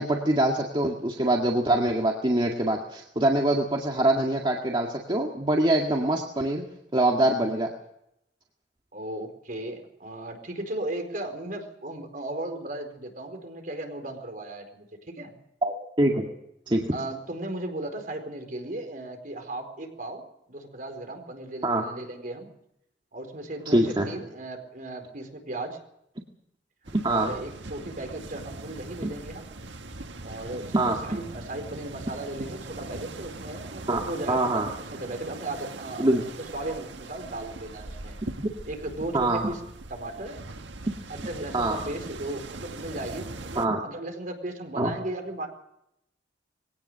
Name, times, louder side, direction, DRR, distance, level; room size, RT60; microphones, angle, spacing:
voice 1, 0.0-6.6 6.9-7.7 15.6-16.3 16.7-16.9 21.6-21.8 23.7-24.1 26.9-27.3 29.0-29.1 30.7-31.0 33.9-34.0 34.3-34.7 36.0-36.2 39.1-39.5 41.5-41.8 43.6-43.8 44.8-44.9, right 1 dB, 25° right, 0 dB, 1.9 m, -24 dB
voice 2, 8.9-15.3 16.9-22.5 23.1-25.8 27.1-29.4 30.2-34.6 34.9-38.2 38.7-39.6 39.9-40.4 41.1-45.5, right 1 dB, 50° right, 5 dB, 4.5 m, -36 dB
sound 1, 26.8-43.7, right 2 dB, 85° right, 1.6 m, -41 dB
22.0 x 18.0 x 6.9 m, 0.79 s
head